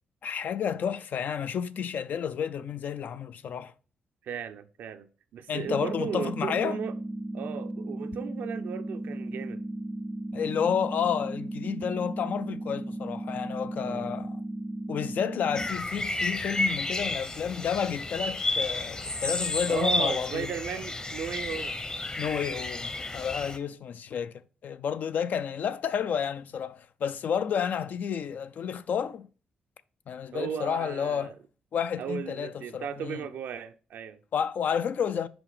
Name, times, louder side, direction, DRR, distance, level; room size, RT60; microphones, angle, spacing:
voice 1, 0.2-3.7 5.5-6.8 10.3-14.4 14.9-20.5 21.5-21.6 22.2-29.3 30.1-31.3 31.7-33.3 34.3-35.3, left 7 dB, 70° left, 0.4 m, -31 dB
voice 2, 4.2-6.9 7.3-9.6 13.8-14.2 19.7-21.8 30.3-31.4 32.0-34.2, right 8 dB, 85° right, 0.6 m, -36 dB
sound 1, 5.7-15.7, right 1 dB, 10° right, 0.4 m, -36 dB
sound 2, 15.5-23.6, left 2 dB, 25° left, 0.8 m, -31 dB
6.0 x 5.0 x 4.9 m
cardioid pair, 80°, 3 cm